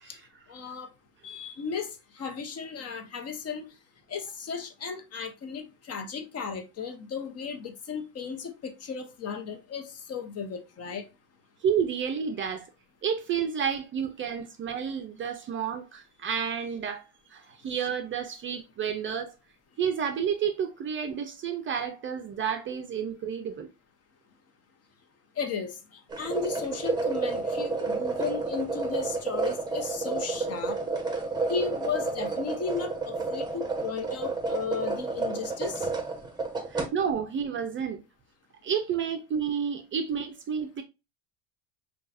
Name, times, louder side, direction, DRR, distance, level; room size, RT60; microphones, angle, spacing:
voice 1, 0.5-0.9 1.2-3.7 4.1-11.1 25.4-30.8 31.5-35.9, left 6 dB, 40° left, 0.8 m, -35 dB
voice 2, 11.6-12.7 13.0-19.4 19.8-23.7 36.7-38.0 38.6-40.8, right 7 dB, 30° right, 0.5 m, -30 dB
sound 1, 26.1-36.9, right 3 dB, 10° right, 1.0 m, -30 dB
5.5 x 2.4 x 2.5 m
supercardioid pair, 110°, 40 cm